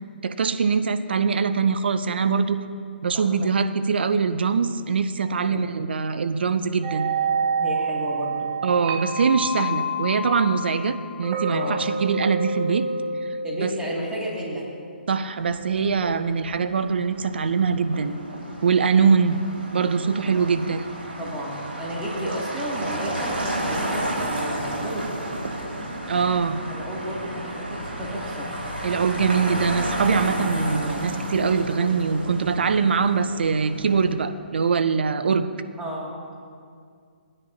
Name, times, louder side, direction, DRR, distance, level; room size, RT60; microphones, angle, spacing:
voice 1, 0.2-2.6 3.0-7.1 8.6-12.9 13.2-13.3 13.6-13.7 15.1-18.1 18.6-19.4 19.7-20.9 26.1-26.6 28.8-35.5, right 5 dB, 65° right, 11 dB, 0.6 m, -23 dB
sound 1, 6.8-14.9, right 2 dB, 35° right, 1.0 m, -28 dB
voice 2, 7.6-8.5 11.5-11.8 13.4-14.6 20.2-20.6 21.2-25.0 26.7-28.5 35.8-36.4, equal, 10° right, -5 dB, 2.6 m, -32 dB
Motor vehicle (road), 15.4-34.1, right 1 dB, 90° right, 3.3 m, -32 dB
17.5 x 9.9 x 2.9 m, 2.2 s
hypercardioid pair, 140°, 6 cm